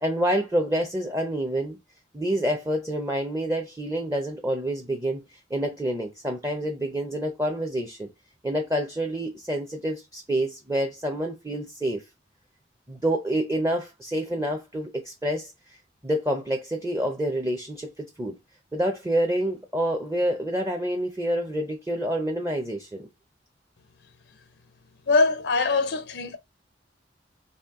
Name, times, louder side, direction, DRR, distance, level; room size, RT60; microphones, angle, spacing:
voice 1, 0.0-1.8 2.1-5.2 5.5-8.1 8.4-12.0 12.9-15.5 16.0-18.3 18.7-23.1, right 1 dB, 15° right, 0.6 m, -27 dB
voice 2, 25.1-26.4, left 3 dB, 70° left, 0.5 m, -22 dB
4.3 x 3.0 x 3.6 m
head